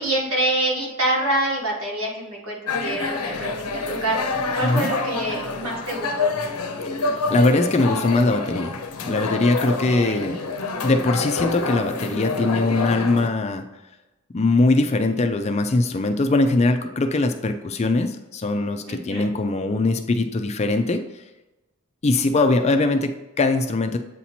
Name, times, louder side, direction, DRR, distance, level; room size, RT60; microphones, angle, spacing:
voice 1, 0.0-6.3 9.9-10.2 18.9-19.3, right 1 dB, 80° right, -2 dB, 1.6 m, -26 dB
sound 1, 2.7-13.3, left 3 dB, 85° left, 0.7 m, -27 dB
voice 2, 7.0-8.8 9.1-10.4 10.8-13.6 14.3-21.0 22.0-24.0, left 2 dB, 30° left, 7 dB, 0.4 m, -21 dB
8.1 x 2.9 x 4.2 m, 1.0 s
head